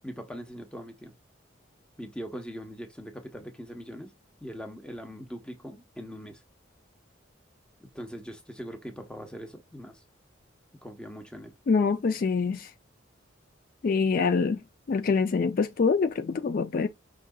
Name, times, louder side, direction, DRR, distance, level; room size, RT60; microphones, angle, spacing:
voice 1, 0.0-1.1 2.0-4.1 4.4-6.4 7.8-10.0 10.8-11.5, equal, 5° left, 0.8 m, -41 dB
voice 2, 11.7-12.7 13.8-14.6 14.9-16.9, left 5 dB, 45° left, 0.3 m, -25 dB
5.8 x 3.6 x 2.2 m
head